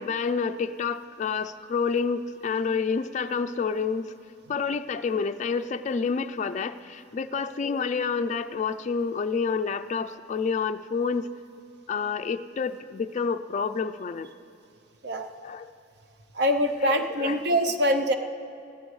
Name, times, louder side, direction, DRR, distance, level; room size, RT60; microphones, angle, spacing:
voice 1, 0.0-4.1 4.5-11.3 11.9-14.3 15.4-15.7 16.8-17.6, left 5 dB, 40° left, 9 dB, 0.3 m, -29 dB
voice 2, 16.3-18.2, equal, 60° right, 6 dB, 0.7 m, -24 dB
22.5 x 15.0 x 3.2 m, 2.6 s
head